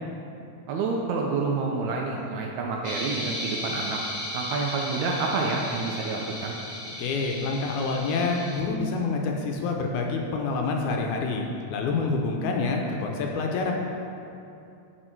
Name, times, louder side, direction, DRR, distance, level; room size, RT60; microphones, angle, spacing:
voice 1, 0.7-4.0 4.3-6.6, right 4 dB, 80° right, 0 dB, 1.7 m, -28 dB
sound 1, 2.8-8.6, left 1 dB, 40° left, 0.8 m, -35 dB
voice 2, 7.0-11.5 11.7-13.7, left 4 dB, 75° left, 1 dB, 2.0 m, -27 dB
8.7 x 4.7 x 4.5 m, 2.7 s
omnidirectional pair, 3.7 m